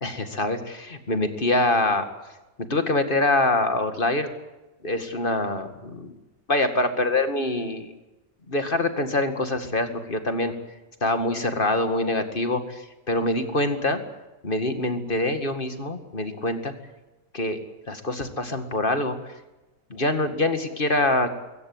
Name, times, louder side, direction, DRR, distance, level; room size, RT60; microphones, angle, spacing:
voice 1, 0.0-2.1 2.7-4.3 4.8-6.1 6.5-7.9 8.5-10.5 11.0-14.0 14.4-16.7 17.3-17.6 17.9-19.3 19.9-21.3, left 2 dB, 35° left, 8 dB, 2.2 m, -25 dB
22.0 x 17.5 x 9.5 m, 1.1 s
omnidirectional pair, 1.5 m